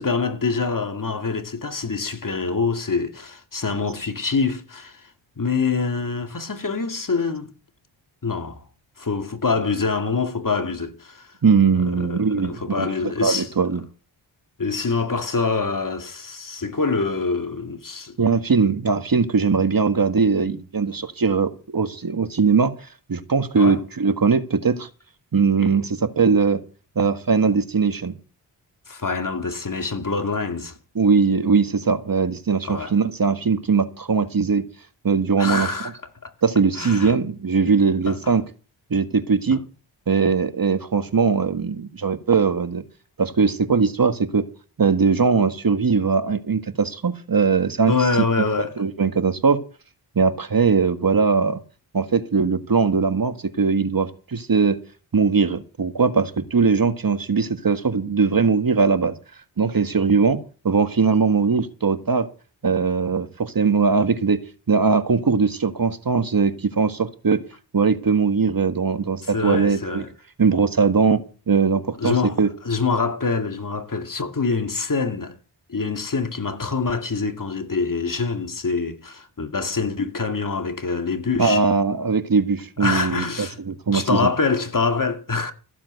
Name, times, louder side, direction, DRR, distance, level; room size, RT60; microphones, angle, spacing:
voice 1, 0.0-5.1 5.4-7.5 8.2-8.6 9.0-11.3 11.7-13.7 14.6-18.2 23.5-23.8 28.9-30.7 32.6-33.0 35.4-35.9 36.2-36.3 36.8-37.2 38.1-38.3 39.5-39.6 47.9-48.8 69.3-70.1 72.0-72.4 72.6-75.4 75.7-81.6 82.8-83.6 83.9-85.5, left 4 dB, 40° left, 2.3 m, -25 dB
voice 2, 11.4-13.8 18.2-22.7 23.1-24.9 25.3-26.6 26.9-28.1 30.9-34.6 35.0-35.7 36.4-38.4 38.9-39.6 40.1-42.8 43.2-44.5 44.8-47.9 48.8-49.6 50.1-51.6 51.9-54.8 55.1-59.1 59.6-62.3 62.6-64.4 64.7-67.4 67.7-70.0 70.4-72.5 81.4-83.2 83.6-84.3, right 5 dB, 45° right, 1.7 m, -20 dB
15.0 x 7.3 x 8.1 m
cardioid pair, 45°, 48 cm